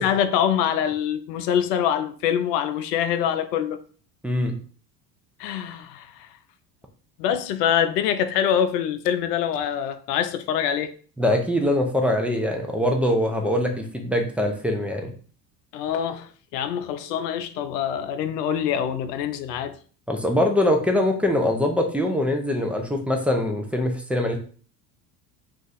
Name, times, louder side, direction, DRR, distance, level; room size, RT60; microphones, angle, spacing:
voice 1, 0.0-3.8 5.4-6.3 7.2-10.9 15.7-19.8, left 9 dB, 80° left, 0.6 m, -25 dB
voice 2, 4.2-4.6 11.2-15.1 20.1-24.4, left 1 dB, 5° right, 0.4 m, -23 dB
2.4 x 2.4 x 4.0 m
hypercardioid pair, 75°, 48 cm